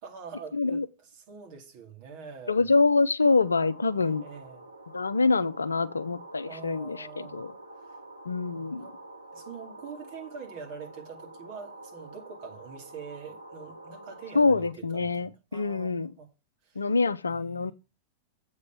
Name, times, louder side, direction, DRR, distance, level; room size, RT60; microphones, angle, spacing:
voice 1, 0.0-2.8 4.0-4.7 6.4-7.4 7.8-8.0 8.8-9.0 9.3-16.3 16.6-16.9 17.3-17.7, right 5 dB, 55° right, 2.3 m, -45 dB
voice 2, 0.5-0.9 2.5-4.2 4.9-7.5 8.3-8.8 14.3-16.1 16.8-17.7, left 3 dB, 85° left, 0.5 m, -25 dB
sound 1, 3.2-14.7, right 2 dB, 90° right, 1.0 m, -47 dB
8.0 x 5.2 x 5.5 m
figure-of-eight pair, 90°, 0 cm